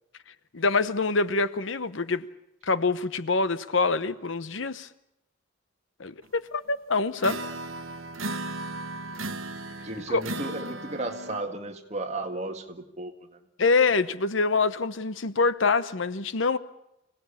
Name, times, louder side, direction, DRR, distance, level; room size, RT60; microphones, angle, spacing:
voice 1, 0.5-2.2 2.6-4.9 6.0-7.4 10.1-10.2 13.6-16.6, left 4 dB, 70° left, 14 dB, 0.9 m, -25 dB
sound 1, 7.2-11.4, right 2 dB, 80° right, 1.2 m, -35 dB
voice 2, 9.8-13.1, right 2 dB, 35° right, 4 dB, 1.9 m, -34 dB
25.5 x 17.5 x 8.5 m, 0.85 s
head